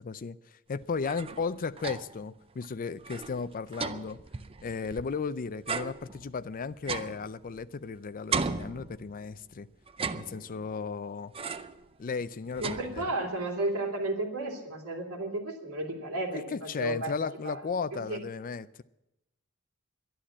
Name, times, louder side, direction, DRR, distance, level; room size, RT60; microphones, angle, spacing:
voice 1, 0.0-4.2 4.6-9.7 10.1-11.3 12.0-13.1 16.3-18.8, left 5 dB, 40° left, 15 dB, 0.4 m, -35 dB
sound 1, 0.8-2.3 2.6-2.7 3.0-5.2 5.7-7.9 8.3-9.4 9.9-10.8 11.3-11.9 12.2-13.4, right 5 dB, 25° right, 0.5 m, -37 dB
voice 2, 12.6-17.1 17.4-17.6 18.1-18.2, right 2 dB, 70° right, 0 dB, 3.0 m, -33 dB
11.5 x 11.0 x 8.5 m, 0.91 s
head